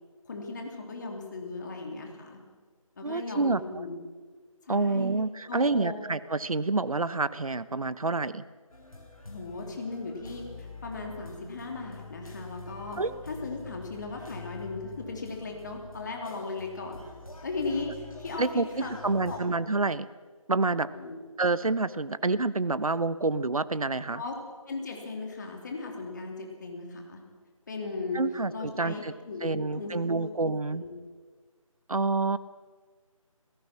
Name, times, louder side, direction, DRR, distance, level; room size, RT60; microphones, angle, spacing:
voice 1, 0.3-2.4 3.0-4.0 4.6-5.1 5.5-6.0 9.3-13.0 13.3-17.0 17.4-19.4 20.9-21.2 24.1-24.3 24.7-27.2 27.7-28.2 28.5-30.3 30.8-31.0, left 3 dB, 30° left, 2 dB, 3.2 m, -37 dB
voice 2, 3.0-3.6 4.7-8.4 13.0-13.1 18.4-20.1 20.5-20.9 21.4-24.2 28.1-29.1 29.4-30.8 31.9-32.4, right 3 dB, 80° right, 15 dB, 1.0 m, -28 dB
sound 1, 8.7-19.4, left 3 dB, 80° left, 6.4 m, -45 dB
27.0 x 17.5 x 6.1 m, 1.5 s
figure-of-eight pair, 165°, 18 cm